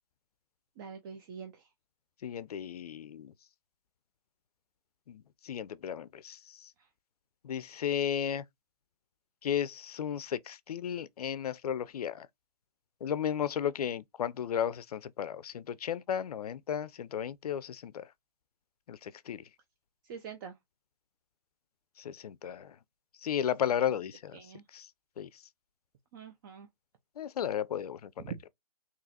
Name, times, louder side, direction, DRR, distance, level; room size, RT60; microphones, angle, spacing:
voice 1, 0.8-1.7 6.8-6.9 20.0-20.6 24.3-24.6 26.1-26.7 28.2-28.4, right 7 dB, 30° right, 0.5 m, -44 dB
voice 2, 2.2-3.3 5.1-6.4 7.4-8.4 9.4-12.3 13.0-18.0 18.9-19.4 22.0-22.7 23.2-24.4 24.7-24.9 25.2-25.3 27.2-28.3, left 9 dB, 65° left, 0.5 m, -34 dB
3.8 x 2.9 x 2.8 m
figure-of-eight pair, 130°, 21 cm